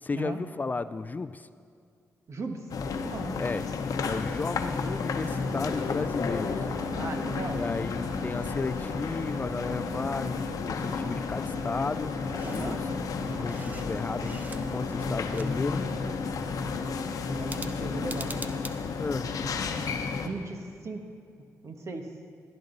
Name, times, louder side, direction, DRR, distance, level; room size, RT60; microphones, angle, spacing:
voice 1, 0.0-1.5 3.4-3.6 4.0-6.6 7.5-12.1 12.4-12.9 13.2-15.8 19.0-19.3, left 4 dB, 30° left, 13 dB, 0.3 m, -34 dB
voice 2, 2.3-2.6 3.0-3.4 6.9-7.6 12.4-12.8 17.3-18.3 20.1-21.1 21.6-22.1, right 3 dB, 55° right, 4 dB, 1.4 m, -37 dB
sound 1, 2.7-20.3, left 4 dB, 75° left, 0.9 m, -32 dB
sound 2, 5.2-16.3, right 5 dB, 70° right, 0.8 m, -47 dB
sound 3, 12.4-12.8 13.2-14.8 15.1-16.0 17.4-18.8, right 2 dB, 25° right, 0.7 m, -44 dB
17.0 x 11.0 x 3.9 m, 2.3 s
cardioid pair, 80°, 6 cm